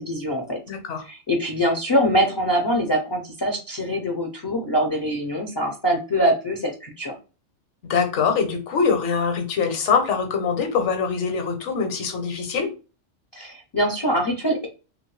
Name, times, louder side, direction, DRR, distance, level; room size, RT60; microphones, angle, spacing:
voice 1, 0.0-0.6 1.1-7.1 13.3-14.7, equal, 35° left, 1 dB, 0.4 m, -23 dB
voice 2, 0.7-1.0 7.9-12.7, left 5 dB, 70° left, 5 dB, 1.1 m, -23 dB
3.0 x 2.5 x 3.1 m, 0.32 s
omnidirectional pair, 1.3 m